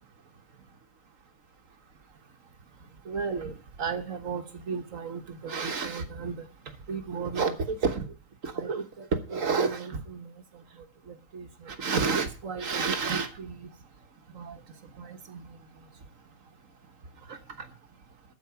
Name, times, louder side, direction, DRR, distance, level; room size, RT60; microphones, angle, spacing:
voice 1, 3.1-3.5 3.8-6.4 6.9-8.1 8.4-10.3 11.3-13.7 14.3-14.6 15.0-15.4, right 5 dB, 70° right, 6 dB, 1.7 m, -31 dB
13.5 x 4.8 x 8.2 m, 0.36 s
omnidirectional pair, 1.4 m